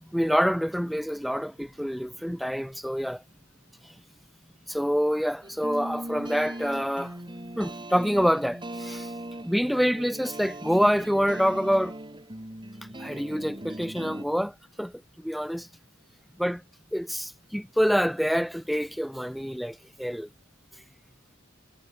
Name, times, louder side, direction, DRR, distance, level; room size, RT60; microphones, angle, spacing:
voice 1, 0.1-3.2 4.7-7.2 7.6-9.1 9.4-12.0 13.0-14.9 15.2-15.7 16.4-16.6 16.9-20.3, equal, ahead, 1.0 m, -26 dB
sound 1, 5.4-14.2, right 1 dB, 20° right, 4.6 m, -39 dB
head